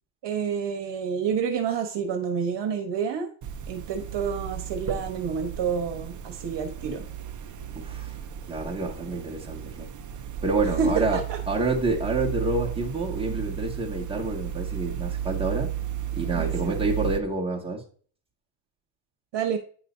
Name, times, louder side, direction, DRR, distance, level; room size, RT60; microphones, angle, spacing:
voice 1, 0.2-3.3 3.7-7.1 10.8-11.4 16.3-16.8 19.3-19.6, right 6 dB, 55° right, 6 dB, 1.3 m, -28 dB
sound 1, 3.4-17.2, right 10 dB, 40° right, 0.6 m, -34 dB
voice 2, 7.7-8.1 8.5-9.9 10.4-11.2 11.5-15.7 16.1-17.8, right 3 dB, 10° right, -3 dB, 1.7 m, -28 dB
9.5 x 5.6 x 2.6 m, 0.43 s
cardioid pair, 155°, 50 cm